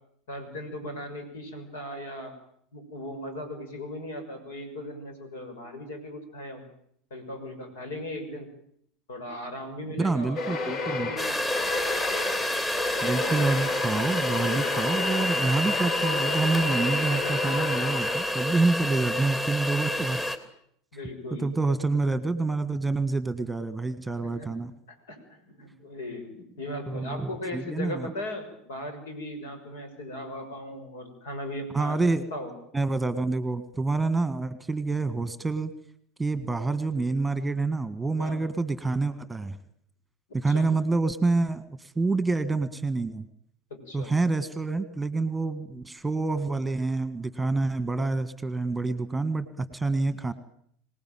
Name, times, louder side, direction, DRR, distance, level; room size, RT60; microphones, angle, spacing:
voice 1, 0.3-2.3 2.7-6.6 7.1-8.5 9.1-11.4 20.9-21.5 24.2-24.6 24.9-25.2 25.4-32.0 32.3-32.5 38.2-38.5 40.5-40.7 43.7-44.1, left 1 dB, 70° left, 7 dB, 6.3 m, -38 dB
voice 2, 10.0-11.1 13.0-20.2 21.4-24.7 26.9-28.1 31.7-32.3 32.7-35.7 36.2-39.6 40.3-43.3 43.9-50.3, right 3 dB, 10° right, 13 dB, 1.7 m, -27 dB
sound 1, 10.4-18.6, left 3 dB, 40° left, 2.2 m, -32 dB
sound 2, 11.2-20.4, left 1 dB, 15° left, 3.2 m, -29 dB
25.0 x 19.0 x 9.2 m, 0.70 s
figure-of-eight pair, 75°, 0 cm